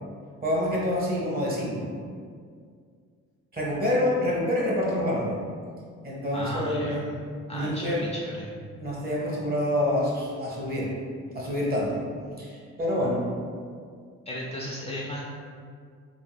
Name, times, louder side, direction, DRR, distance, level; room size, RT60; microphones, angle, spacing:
voice 1, 0.4-1.9 3.5-5.4 6.0-7.0 7.5-8.0 8.8-11.0 11.3-12.0 12.4-13.3, left 1 dB, 30° right, -4 dB, 0.9 m, -27 dB
voice 2, 6.3-7.2 7.5-8.5 14.3-15.2, equal, 20° left, -5 dB, 0.3 m, -35 dB
3.5 x 2.6 x 2.3 m, 2.1 s
cardioid pair, 90°, 30 cm